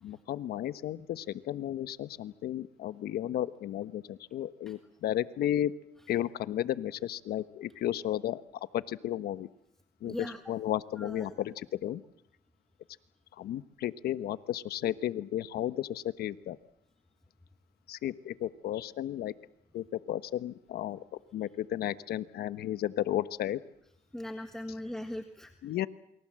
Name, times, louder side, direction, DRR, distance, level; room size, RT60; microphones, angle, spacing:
voice 1, 0.0-5.7 6.1-8.4 8.7-9.5 10.0-12.0 13.4-16.6 17.9-19.3 19.7-21.0 21.3-23.6 25.6-25.9, left 12 dB, 65° left, 13 dB, 1.2 m, -33 dB
voice 2, 10.1-10.4 11.0-11.3 24.1-25.5, left 1 dB, 5° left, 6 dB, 1.6 m, -39 dB
28.0 x 23.0 x 7.7 m, 0.78 s
cardioid pair, 110°, 17 cm